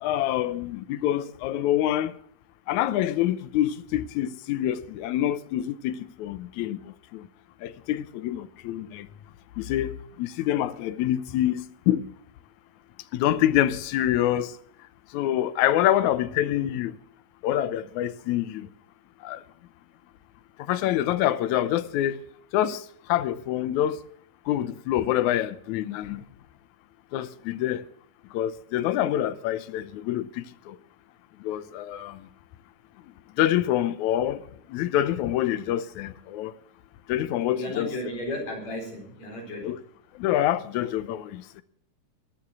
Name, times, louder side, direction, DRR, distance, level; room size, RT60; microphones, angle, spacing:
voice 1, 0.0-2.1 2.7-7.3 7.6-9.1 9.6-9.9 10.2-12.1 13.1-14.5 15.1-17.0 17.4-18.7 19.2-19.4 20.6-22.2 22.5-22.8 23.1-24.0 24.5-26.2 27.1-27.8 28.3-30.8 31.4-32.2 33.4-34.4 34.7-36.5 37.1-37.9 39.6-39.8 40.2-41.6, left 12 dB, 75° left, 2.1 m, -26 dB
voice 2, 37.5-39.8, left 1 dB, 60° left, 5.7 m, -34 dB
21.5 x 7.4 x 6.1 m
omnidirectional pair, 3.6 m